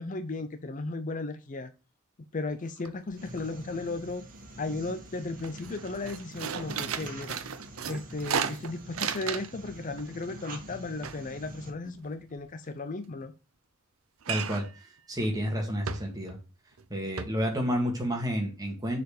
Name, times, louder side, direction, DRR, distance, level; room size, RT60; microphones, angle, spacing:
voice 1, 0.0-1.7 2.3-4.2 4.6-7.4 7.9-13.3, left 3 dB, 40° left, 10 dB, 0.6 m, -35 dB
sound 1, 2.5-2.6 2.9-3.4 3.7-4.5 4.9-5.1 5.4-9.7 10.0-12.4 14.2-14.8 15.2-15.3 15.9-16.4 16.8-16.9 17.2-17.3, right 7 dB, 90° right, 0.7 m, -35 dB
sound 2, 3.1-11.7, equal, 40° right, 1.8 m, -46 dB
voice 2, 14.3-14.7 15.1-16.4 16.9-19.0, equal, 20° right, 1 dB, 2.1 m, -30 dB
6.9 x 4.2 x 6.5 m, 0.32 s
head